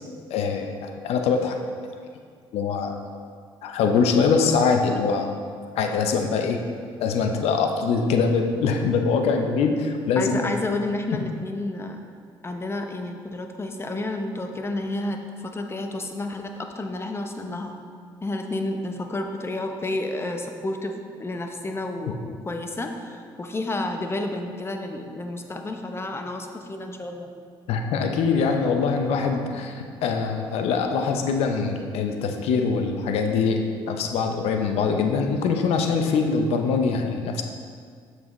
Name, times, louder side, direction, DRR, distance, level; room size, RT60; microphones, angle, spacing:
voice 1, 0.3-1.6 2.5-3.0 3.6-5.3 5.8-6.6 7.0-10.4 27.7-37.4, left 5 dB, 75° left, 5 dB, 0.7 m, -23 dB
voice 2, 10.2-12.0 12.4-17.8 18.2-27.3, left 2 dB, 25° left, 4 dB, 0.8 m, -30 dB
7.0 x 6.4 x 3.1 m, 2.1 s
supercardioid pair, 70°, 11 cm